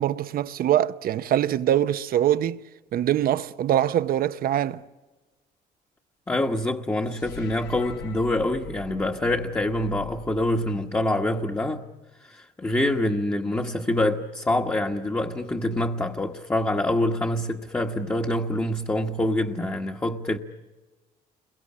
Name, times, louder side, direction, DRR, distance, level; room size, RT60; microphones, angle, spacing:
voice 1, 0.0-2.6 2.9-4.8, right 11 dB, 60° right, 0.9 m, -23 dB
voice 2, 6.3-11.8 12.2-20.4, left 1 dB, 15° left, 1.3 m, -26 dB
sound 1, 7.1-11.4, left 4 dB, 85° left, 2.4 m, -43 dB
29.5 x 22.5 x 8.6 m
cardioid pair, 110°, 17 cm